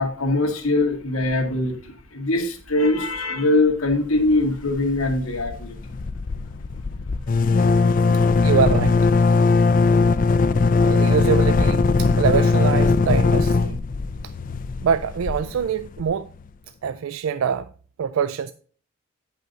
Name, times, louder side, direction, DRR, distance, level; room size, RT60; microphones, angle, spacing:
voice 1, 0.0-5.7, left 2 dB, 90° left, 1.7 m, -22 dB
sound 1, 4.2-4.7 5.0-5.1 5.4-16.1, left 4 dB, 40° left, 0.4 m, -19 dB
voice 2, 8.4-9.0 10.8-13.8 14.2-14.3 14.8-16.3 16.8-17.7 18.0-18.5, right 7 dB, 70° right, 0.3 m, -24 dB
9.1 x 5.6 x 3.9 m
head